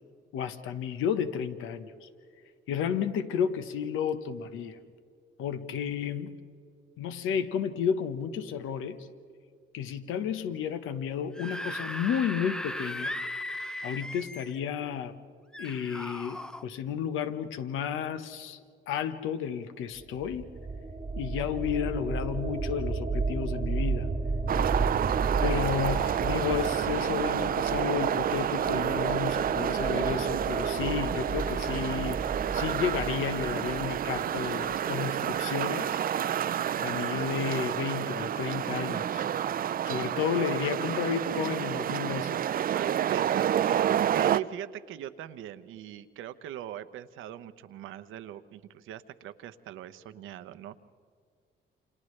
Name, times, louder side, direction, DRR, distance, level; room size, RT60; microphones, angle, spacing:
voice 1, 0.3-2.1 2.7-4.8 5.4-6.4 7.0-9.1 9.7-13.1 13.8-15.1 15.6-18.6 18.9-20.5 21.2-24.1 25.4-32.2 32.5-36.3 36.8-39.2 39.8-42.4, left 8 dB, 90° left, 10 dB, 1.0 m, -32 dB
Screaming / Screech, 11.2-14.6 15.5-16.6, left 1 dB, 5° left, 0.5 m, -37 dB
sound 1, 20.0-34.8, right 3 dB, 20° right, 1.3 m, -33 dB
sound 2, 24.5-44.4, right 10 dB, 45° right, 0.4 m, -29 dB
voice 2, 42.7-50.8, right 11 dB, 85° right, 11 dB, 0.8 m, -41 dB
29.0 x 27.5 x 3.2 m, 2.2 s
cardioid pair, 90°, 20 cm